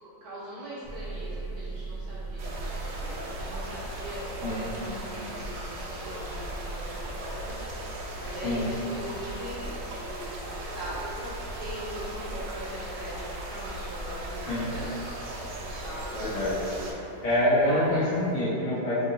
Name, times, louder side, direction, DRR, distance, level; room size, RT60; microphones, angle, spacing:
voice 1, 0.0-14.9 15.6-16.3 16.7-17.0 17.6-18.0, right 1 dB, 60° right, -11 dB, 1.6 m, -41 dB
sound 1, 0.8-18.4, right 2 dB, 40° right, 1.2 m, -44 dB
sound 2, 2.4-16.9, right 1 dB, 85° right, 1.3 m, -37 dB
voice 2, 4.4-5.3 8.4-8.7 14.5-14.7 16.1-16.6 17.2-19.0, left 1 dB, 60° left, -11 dB, 1.1 m, -27 dB
3.6 x 2.1 x 3.8 m, 2.9 s
omnidirectional pair, 1.9 m